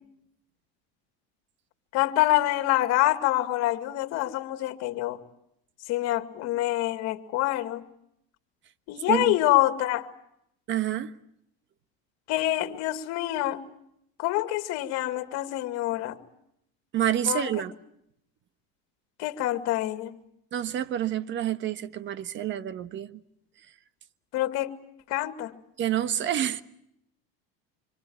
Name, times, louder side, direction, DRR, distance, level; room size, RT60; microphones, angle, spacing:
voice 1, 1.9-5.2 5.9-7.9 8.9-10.1 12.3-13.6 14.2-16.2 17.3-17.5 19.2-20.2 24.3-24.7 25.1-25.6, left 16 dB, 55° left, 2.3 m, -26 dB
voice 2, 10.7-11.1 16.9-17.7 20.5-23.2 25.8-26.6, right 11 dB, 40° right, 1.3 m, -28 dB
26.0 x 26.0 x 8.8 m
supercardioid pair, 130°, 31 cm